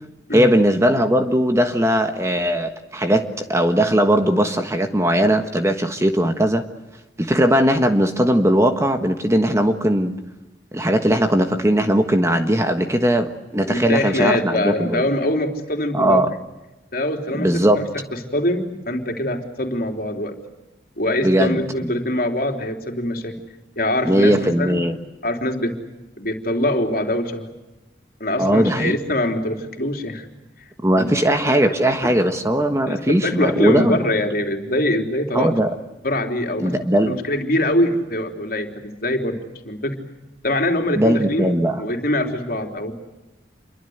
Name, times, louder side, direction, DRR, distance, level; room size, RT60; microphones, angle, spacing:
voice 1, 0.3-6.6 7.2-10.2 10.7-15.0 15.9-16.3 17.4-17.8 21.2-21.6 24.0-24.9 28.4-28.9 30.8-34.0 35.3-35.7 36.6-37.1 41.0-41.8, equal, 15° right, 6 dB, 1.4 m, -19 dB
voice 2, 13.7-16.2 16.9-18.0 18.3-20.3 21.0-23.3 23.8-24.8 25.2-25.7 26.2-27.5 28.2-30.3 30.6-30.7 31.0-31.1 31.5-31.7 32.0-32.1 32.9-35.5 36.0-36.7 37.0-39.4 39.6-40.0 40.4-42.9, left 1 dB, 50° left, 3 dB, 3.6 m, -23 dB
28.0 x 23.5 x 8.1 m, 1.0 s
head